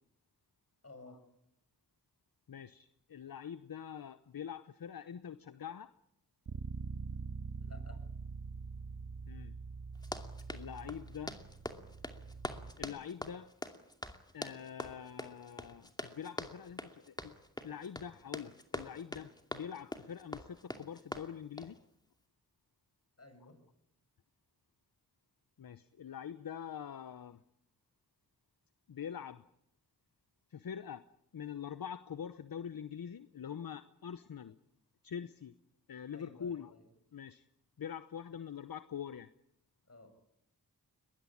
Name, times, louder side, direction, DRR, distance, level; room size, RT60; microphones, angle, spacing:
voice 1, 0.8-1.2 7.6-8.0 23.2-23.6 36.1-36.9 39.8-40.1, left 2 dB, 40° left, 8 dB, 7.1 m, -54 dB
voice 2, 2.5-5.9 9.3-9.5 10.5-11.4 12.8-13.5 14.3-17.3 17.6-21.8 25.6-27.4 28.9-29.4 30.5-31.1 31.3-34.6 35.0-35.6 35.9-36.7 37.1-37.4 37.8-39.3, left 8 dB, 65° left, 14 dB, 0.9 m, -44 dB
Bass guitar, 6.5-12.7, right 4 dB, 55° right, 1.3 m, -44 dB
Run, 9.9-21.8, left 1 dB, 10° left, 2.5 m, -44 dB
22.0 x 21.0 x 9.9 m, 0.76 s
cardioid pair, 55°, 38 cm